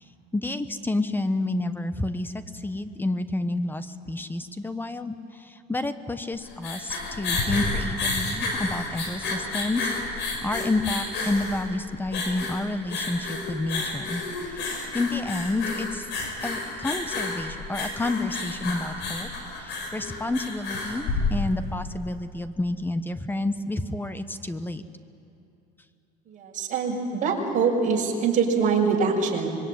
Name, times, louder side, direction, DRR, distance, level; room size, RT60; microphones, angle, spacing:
voice 1, 0.3-14.7 14.9-16.1 16.4-19.3 19.6-24.8, left 2 dB, 10° left, 11 dB, 1.1 m, -29 dB
sound 1, 6.3-21.8, left 3 dB, 65° left, 5.6 m, -31 dB
voice 2, 26.3-29.5, right 5 dB, 40° right, -1 dB, 5.9 m, -24 dB
25.5 x 22.0 x 9.4 m, 2.8 s
cardioid pair, 125°, 20 cm